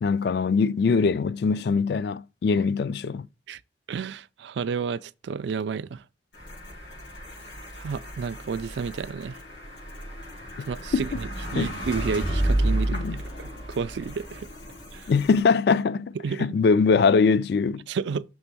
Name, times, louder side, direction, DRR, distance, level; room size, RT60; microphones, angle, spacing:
voice 1, 0.0-3.3 10.9-11.2 11.5-11.7 12.9-13.2 15.1-17.9, left 5 dB, 60° left, 0.3 m, -22 dB
voice 2, 3.9-6.0 7.8-9.4 10.7-13.0 13.4-14.5 14.9-15.1 16.2-16.5 17.9-18.2, right 6 dB, 70° right, 0.4 m, -31 dB
sound 1, 6.3-15.4, right 1 dB, 85° left, 4.4 m, -31 dB
6.2 x 3.4 x 5.9 m
head